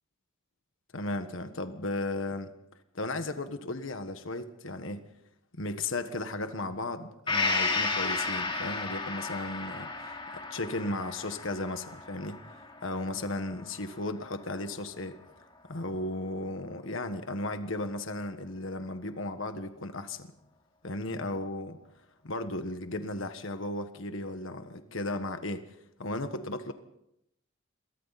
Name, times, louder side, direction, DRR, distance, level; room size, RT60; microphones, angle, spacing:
voice 1, 0.9-2.5 2.9-5.0 5.5-12.4 12.8-15.2 15.7-20.3 20.8-21.8 22.2-26.7, left 2 dB, 65° left, 8 dB, 1.5 m, -35 dB
Gong, 7.3-14.9 15.3-15.4, left 3 dB, 25° left, 3.2 m, -34 dB
28.5 x 23.0 x 4.2 m, 0.80 s
head